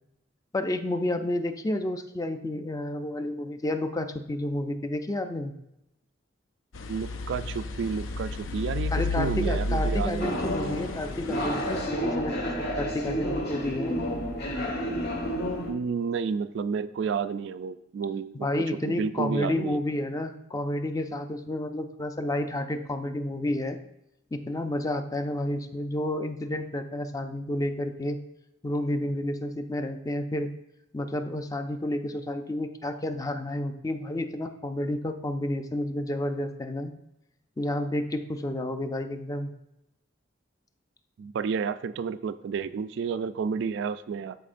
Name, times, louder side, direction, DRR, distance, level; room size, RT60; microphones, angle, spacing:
voice 1, 0.5-5.5 8.9-14.0 18.4-23.8 24.3-28.2 28.6-30.5 30.9-36.9 37.6-39.5, left 1 dB, 15° left, 7 dB, 0.4 m, -30 dB
sound 1, 6.7-11.9, left 2 dB, 85° left, 0.5 m, -32 dB
voice 2, 6.9-10.4 15.7-18.5 18.9-19.8 41.2-44.4, right 6 dB, 65° right, 13 dB, 0.3 m, -31 dB
sound 2, 10.2-15.7, equal, 55° left, 1.3 m, -30 dB
12.5 x 4.3 x 2.5 m, 0.84 s
head